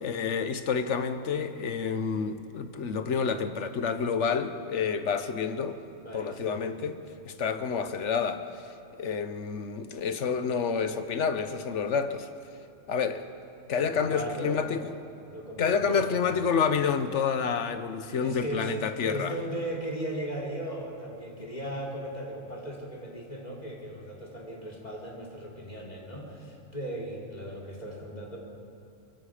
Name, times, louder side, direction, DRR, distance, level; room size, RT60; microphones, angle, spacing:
voice 1, 0.0-5.8 6.1-7.0 7.2-8.4 9.0-12.3 12.9-13.2 13.7-14.9 15.6-19.3, left 6 dB, 60° left, 9 dB, 1.3 m, -29 dB
voice 2, 6.0-6.6 13.7-14.6 15.3-16.4 18.2-18.7 19.0-28.4, right 1 dB, 30° left, -1 dB, 3.3 m, -37 dB
24.5 x 23.0 x 5.1 m, 2.6 s
omnidirectional pair, 1.4 m